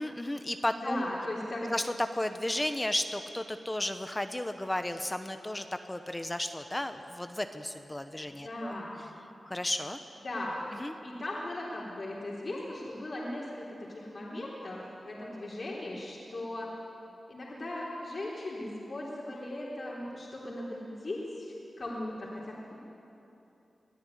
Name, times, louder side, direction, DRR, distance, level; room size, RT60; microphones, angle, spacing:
voice 1, 0.0-1.0 1.7-8.7 9.5-10.0 10.8-10.9, left 1 dB, 15° left, 8 dB, 0.9 m, -33 dB
voice 2, 0.8-1.7 8.2-9.0 10.2-10.6 11.0-16.7 17.3-22.8, left 1 dB, 50° left, -5 dB, 3.9 m, -38 dB
22.0 x 13.5 x 9.9 m, 2.9 s
cardioid pair, 70°, 0 cm